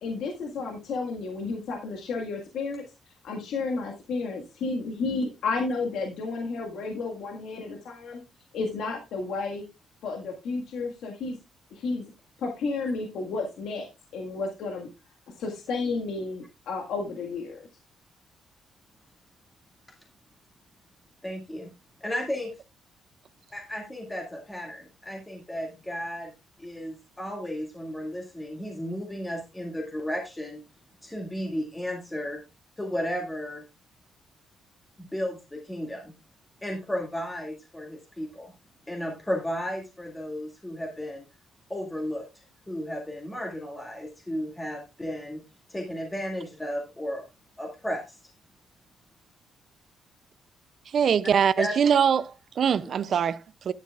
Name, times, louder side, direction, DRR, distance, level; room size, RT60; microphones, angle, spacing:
voice 1, 0.0-8.2 8.5-9.6 10.0-11.4 11.7-12.1 12.4-13.9 14.1-14.9 15.4-17.6, left 3 dB, 80° left, 1.6 m, -32 dB
voice 2, 21.2-21.7 22.0-22.5 23.5-26.3 26.6-30.6 31.0-32.4 32.8-33.6 35.0-36.1 36.6-38.5 38.9-41.3 41.7-42.3 42.7-45.4 45.7-47.2 47.6-48.2 51.6-51.7, equal, 15° left, 2.0 m, -34 dB
voice 3, 50.9-53.7, right 7 dB, 55° right, 0.4 m, -23 dB
11.0 x 9.1 x 2.4 m
cardioid pair, 90°, 0 cm